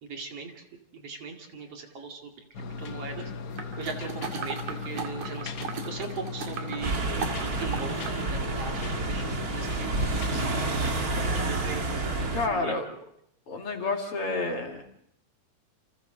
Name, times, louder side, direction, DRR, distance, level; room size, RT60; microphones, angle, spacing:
voice 1, 0.0-0.6 0.9-2.3 2.8-3.3 3.8-5.6 5.9-6.9 7.4-11.9 12.5-12.7, right 5 dB, 55° right, 2 dB, 3.3 m, -39 dB
sound 1, 2.5-10.6, left 5 dB, 90° left, 0.8 m, -37 dB
sound 2, 3.6-8.2 8.6-8.7, right 5 dB, 75° right, 3.5 m, -37 dB
sound 3, 6.8-12.5, right 3 dB, 35° right, 2.2 m, -29 dB
voice 2, 12.3-12.9 13.5-14.8, left 3 dB, 50° left, 2 dB, 2.9 m, -29 dB
29.5 x 27.0 x 3.9 m, 0.68 s
omnidirectional pair, 3.4 m